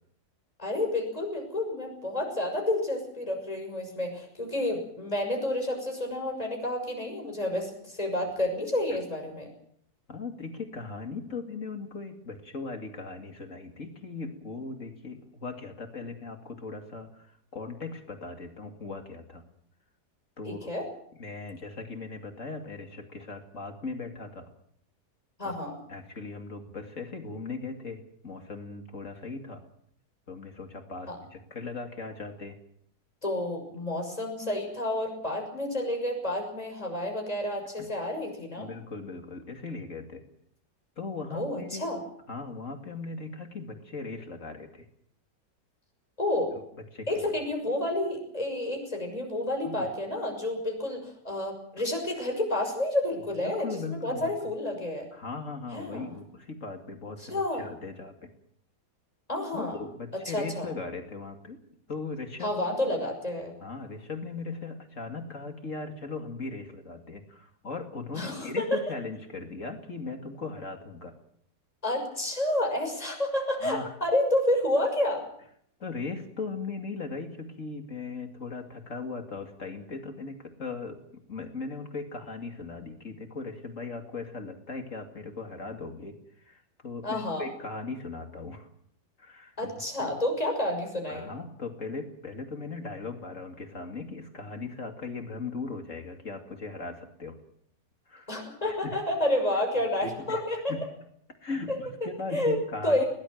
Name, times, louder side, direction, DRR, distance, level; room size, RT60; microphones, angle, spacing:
voice 1, 0.6-9.5 20.4-20.9 25.4-25.8 31.1-31.2 33.2-38.7 41.3-42.0 46.2-46.5 47.1-55.1 55.7-56.1 57.3-57.7 59.3-59.7 60.2-60.7 62.4-63.5 68.1-68.8 71.8-75.2 87.0-87.5 89.6-91.3 98.3-100.7 101.7-101.8 102.3-102.6 102.8-103.1, left 1 dB, 20° left, 2 dB, 6.3 m, -30 dB
voice 2, 10.1-19.5 20.4-20.7 21.2-24.5 25.4-25.5 25.9-29.6 30.3-32.6 37.8-37.9 38.6-40.2 41.0-41.9 42.3-44.9 46.9-47.3 49.6-49.9 53.4-54.3 55.1-58.3 59.5-61.6 61.9-62.5 63.6-71.1 73.6-73.9 75.8-81.0 81.3-86.2 86.4-88.7 89.2-89.6 90.0-90.1 91.1-97.4 98.1-98.4 98.6-99.0 100.0-100.4 100.7-100.9 101.4-103.0, left 3 dB, 45° left, 5 dB, 2.8 m, -38 dB
21.5 x 19.5 x 7.9 m, 0.68 s
omnidirectional pair, 1.9 m